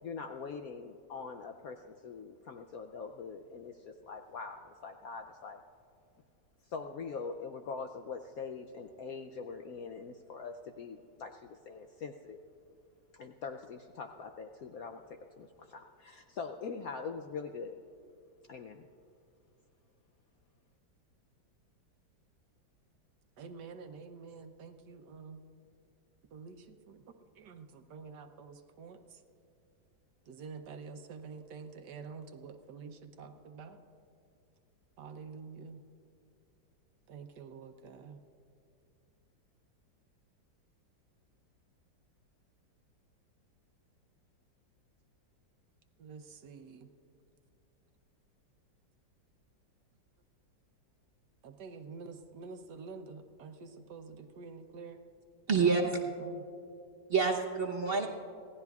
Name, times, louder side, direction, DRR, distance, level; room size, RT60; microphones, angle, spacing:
voice 1, 0.0-5.6 6.6-12.4 13.1-15.0 15.4-17.8 18.5-18.9, left 5 dB, 70° left, 5 dB, 0.8 m, -43 dB
voice 2, 23.4-25.4 26.3-29.2 30.3-33.8 35.0-35.8 37.1-38.2 46.0-46.9 51.4-55.0 55.5-56.4, right 5 dB, 65° right, 7 dB, 1.3 m, -48 dB
voice 3, 55.5-56.0 57.1-58.1, right 4 dB, 45° right, 1 dB, 0.8 m, -27 dB
26.5 x 17.0 x 2.4 m, 2.6 s
omnidirectional pair, 2.1 m